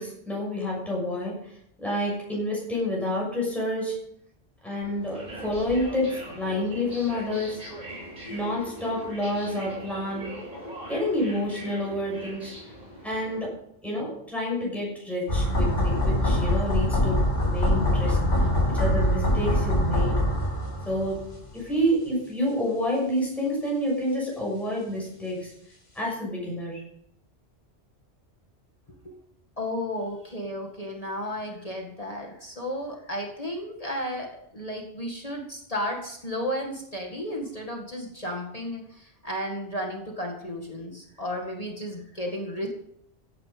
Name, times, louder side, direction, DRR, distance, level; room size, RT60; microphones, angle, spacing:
voice 1, 0.0-1.5 1.8-4.0 4.6-7.6 8.3-10.3 10.9-12.5 13.0-13.5 13.8-20.2 20.9-21.2 21.5-25.5 25.9-26.8, left 1 dB, ahead, -4 dB, 6.6 m, -29 dB
sound 1, 4.8-13.5, equal, 35° right, 7.6 m, -41 dB
sound 2, 15.3-21.4 21.6-21.7, left 1 dB, 90° left, 4.0 m, -23 dB
voice 2, 29.6-42.7, equal, 30° left, 1 dB, 2.1 m, -33 dB
16.0 x 10.0 x 5.3 m, 0.72 s
omnidirectional pair, 1.2 m